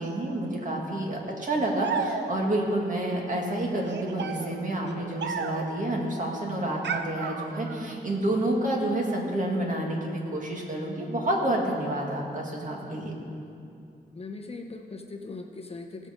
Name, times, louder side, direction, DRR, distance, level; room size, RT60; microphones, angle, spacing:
voice 1, 0.0-13.1, right 1 dB, 45° right, -1 dB, 1.9 m, -29 dB
sound 1, 1.8-2.6 3.8-5.8 6.8-7.9, right 5 dB, 75° right, 0.6 m, -34 dB
voice 2, 14.1-16.1, left 3 dB, 35° left, 3 dB, 0.8 m, -40 dB
18.0 x 6.4 x 5.1 m, 2.6 s
wide cardioid pair, 125°, 18 cm